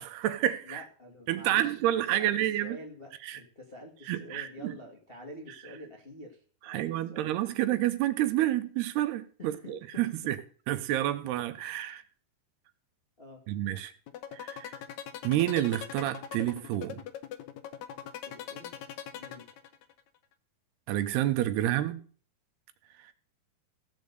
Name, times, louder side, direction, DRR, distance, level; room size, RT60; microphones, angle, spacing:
voice 1, 0.0-0.8 1.3-2.8 3.2-3.4 4.1-4.7 6.7-10.4 10.7-12.0 13.5-13.9 14.3-14.7 15.2-17.0 20.9-22.0, right 13 dB, 85° right, 2.9 m, -29 dB
voice 2, 0.6-7.6 9.4-10.0 13.2-13.4 18.0-19.5, left 1 dB, 30° left, 1.0 m, -48 dB
sound 1, 14.1-20.0, left 9 dB, 80° left, 1.6 m, -41 dB
16.0 x 5.4 x 8.1 m
omnidirectional pair, 4.6 m